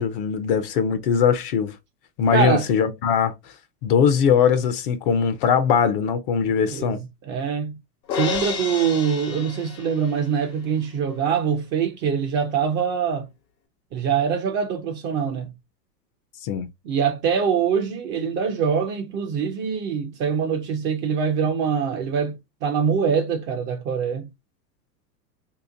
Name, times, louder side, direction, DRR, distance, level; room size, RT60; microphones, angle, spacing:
voice 1, 0.0-1.7 2.2-3.3 3.8-7.0 16.4-16.7, left 7 dB, 35° left, 0.5 m, -21 dB
voice 2, 2.3-2.7 6.7-7.8 8.2-13.3 13.9-15.5 16.8-24.3, right 7 dB, 25° right, 0.4 m, -24 dB
Crash cymbal, 8.1-10.4, left 7 dB, 90° left, 1.2 m, -31 dB
3.0 x 2.9 x 3.7 m
hypercardioid pair, 125°, 50 cm